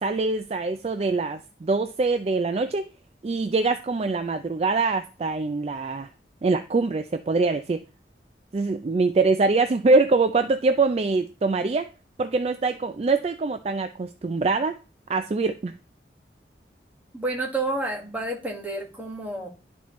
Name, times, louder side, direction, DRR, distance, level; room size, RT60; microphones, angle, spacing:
voice 1, 0.0-2.8 3.2-6.1 6.4-7.8 8.5-11.9 12.2-14.8 15.1-15.7, right 3 dB, 35° right, 0.3 m, -24 dB
voice 2, 17.1-19.5, right 2 dB, 10° right, 1.6 m, -29 dB
11.5 x 4.4 x 3.1 m
head